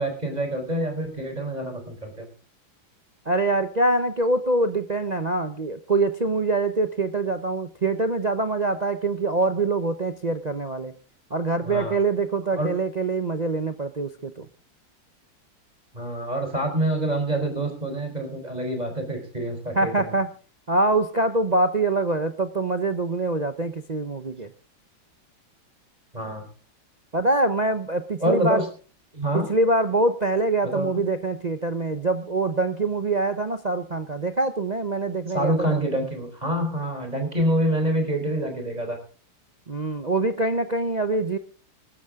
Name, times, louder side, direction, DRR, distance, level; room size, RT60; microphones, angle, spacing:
voice 1, 0.0-2.3 11.6-12.0 12.5-12.7 15.9-20.2 26.1-26.4 28.2-28.6 29.1-29.5 30.7-31.0 35.3-39.0, right 1 dB, 20° right, 4 dB, 4.4 m, -26 dB
voice 2, 3.3-10.9 11.3-14.5 19.7-20.3 20.7-24.5 27.1-28.6 29.3-35.9 39.7-41.4, right 2 dB, 45° right, 8 dB, 0.5 m, -24 dB
19.0 x 13.5 x 3.7 m, 0.38 s
omnidirectional pair, 2.1 m